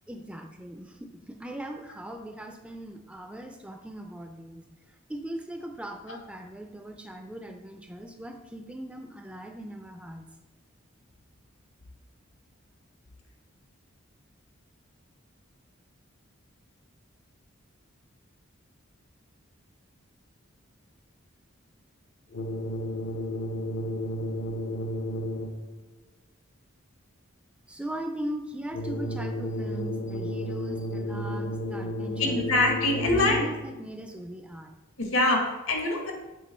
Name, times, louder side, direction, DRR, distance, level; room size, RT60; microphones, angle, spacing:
voice 1, 0.1-4.7 5.1-10.2 27.7-32.4 32.9-34.7, right 1 dB, 5° right, 4 dB, 0.4 m, -39 dB
sound 1, 22.3-25.8 28.7-33.8, equal, 60° left, 0.6 m, -32 dB
voice 2, 32.2-33.5 35.0-36.1, left 2 dB, 90° left, 1 dB, 1.6 m, -24 dB
7.3 x 4.4 x 4.2 m, 1.1 s
head